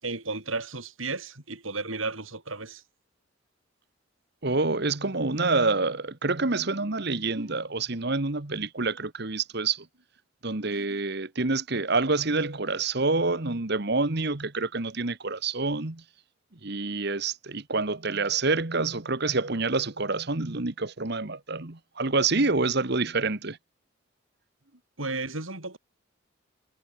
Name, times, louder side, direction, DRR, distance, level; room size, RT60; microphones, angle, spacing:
voice 1, 0.0-2.8 10.6-11.0 25.0-25.8, right 3 dB, 75° right, 5.3 m, -34 dB
voice 2, 4.4-9.9 10.4-16.0 16.6-23.6, right 3 dB, 55° right, 1.5 m, -27 dB
head